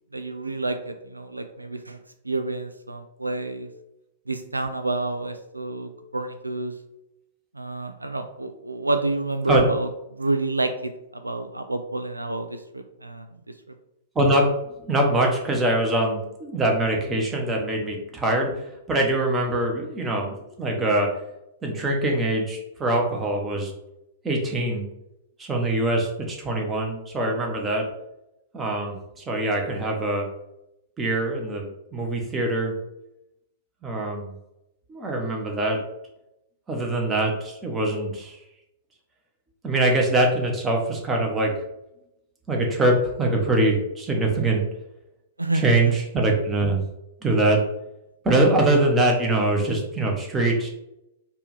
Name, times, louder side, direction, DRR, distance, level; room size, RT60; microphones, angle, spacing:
voice 1, 0.1-2.0 2.2-3.7 4.3-6.7 7.5-13.3 45.4-45.9, right 2 dB, 90° right, 8 dB, 0.3 m, -29 dB
voice 2, 14.1-14.5 14.9-21.1 21.6-23.7 24.2-24.9 25.4-27.8 28.5-30.3 31.0-32.7 33.8-34.3 34.9-35.8 36.7-38.4 39.6-41.5 42.5-44.6 45.6-46.8 47.2-47.6 48.2-50.7, right 2 dB, 15° right, 1 dB, 1.0 m, -23 dB
4.5 x 2.5 x 3.3 m, 0.85 s
figure-of-eight pair, 105°, 0 cm